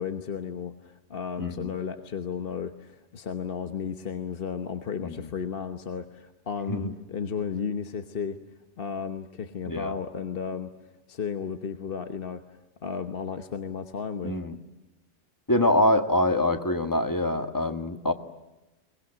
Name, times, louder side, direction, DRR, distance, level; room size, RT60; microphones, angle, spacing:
voice 1, 0.0-8.4 8.8-10.7 11.1-14.4, left 6 dB, 55° left, 8 dB, 1.3 m, -34 dB
voice 2, 1.4-1.7 5.0-5.3 6.7-6.9 9.7-9.9 14.2-14.6 15.5-18.1, left 1 dB, 15° left, 7 dB, 1.6 m, -25 dB
23.0 x 20.5 x 10.0 m, 1.0 s
omnidirectional pair, 1.1 m